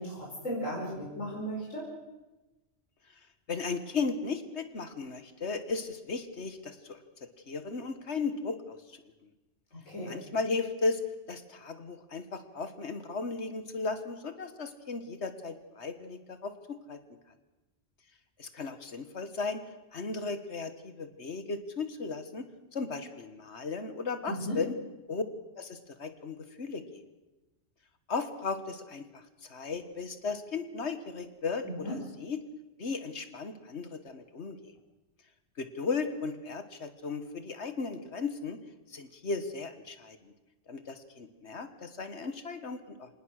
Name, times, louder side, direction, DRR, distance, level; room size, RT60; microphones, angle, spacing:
voice 1, 0.0-1.9 9.7-10.1 24.3-24.6 31.7-31.9, equal, 85° left, -5 dB, 5.3 m, -36 dB
voice 2, 3.5-7.0 7.5-9.0 10.0-11.0 11.3-17.0 18.4-19.6 19.9-22.5 22.7-24.7 25.1-25.2 25.6-27.0 28.1-32.4 32.8-34.8 35.6-38.6 38.9-40.3 40.7-43.1, left 4 dB, 60° left, 10 dB, 1.8 m, -36 dB
26.0 x 19.0 x 6.5 m, 1.1 s
omnidirectional pair, 1.3 m